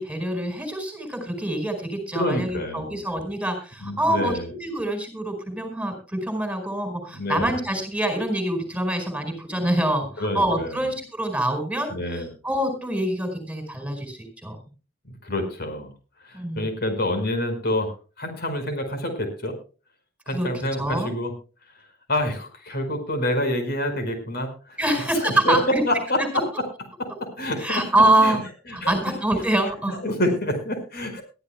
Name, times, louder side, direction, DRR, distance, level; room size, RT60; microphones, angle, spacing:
voice 1, 0.0-14.6 16.3-16.7 20.3-21.1 24.8-25.8 27.6-28.4 28.7-30.0, right 1 dB, 5° right, 7 dB, 4.7 m, -25 dB
voice 2, 2.1-3.0 3.8-4.5 7.1-7.6 10.2-10.8 11.9-12.3 15.2-15.9 16.2-19.6 20.3-21.3 22.1-25.6 25.8-26.7 27.0-27.9 28.2-28.4 28.7-29.0 29.9-31.2, left 1 dB, 55° left, 7 dB, 5.0 m, -27 dB
22.0 x 13.5 x 2.2 m, 0.35 s
head